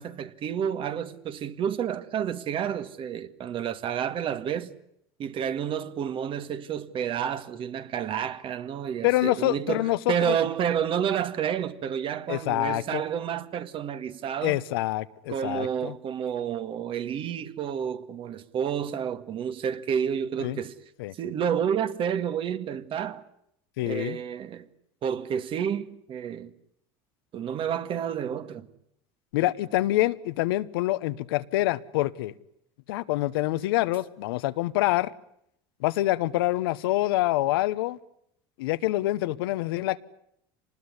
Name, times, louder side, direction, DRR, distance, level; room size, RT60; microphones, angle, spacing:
voice 1, 0.0-4.7 5.2-14.6 15.3-20.7 21.1-23.2 23.8-24.7 25.0-26.5 27.3-28.7, right 8 dB, 45° right, 1.8 m, -30 dB
voice 2, 9.0-10.4 12.3-13.0 14.4-15.9 20.4-20.6 21.0-21.1 23.8-24.2 29.3-32.3 32.9-35.1 35.8-38.0 38.6-40.0, left 17 dB, 85° left, 1.0 m, -26 dB
26.0 x 20.0 x 9.8 m
supercardioid pair, 100°, 12 cm